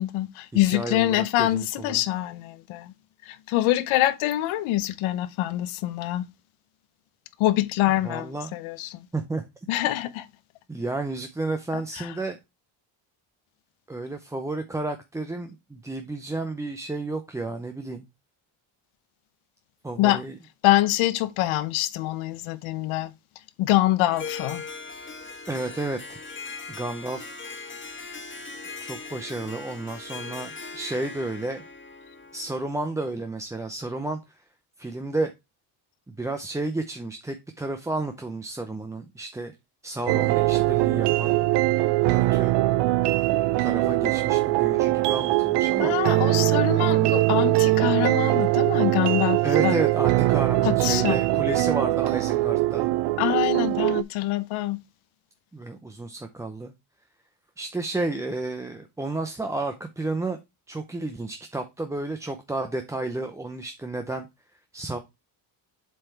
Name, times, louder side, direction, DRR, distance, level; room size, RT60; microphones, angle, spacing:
voice 1, 0.0-2.9 3.3-6.3 7.4-9.1 9.7-10.3 11.7-12.1 20.0-20.2 20.6-23.1 23.6-24.6 45.8-49.8 50.6-51.2 53.2-54.8, left 15 dB, 90° left, 0.8 m, -25 dB
voice 2, 0.6-2.0 8.0-8.5 9.1-9.4 10.7-12.4 13.9-18.1 19.8-20.3 25.5-26.2 26.7-27.4 27.8-28.1 28.8-31.7 32.3-34.4 34.8-35.3 36.1-39.5 39.8-41.4 42.1-42.6 43.0-46.0 49.4-52.9 55.5-56.7 57.6-60.4 60.7-64.3 64.7-65.0, right 2 dB, 5° right, 0.5 m, -32 dB
Harp, 24.1-32.9, left 4 dB, 25° left, 1.5 m, -39 dB
sound 1, 40.1-54.0, right 18 dB, 60° right, 0.5 m, -22 dB
7.7 x 3.4 x 4.5 m
cardioid pair, 115°, 47 cm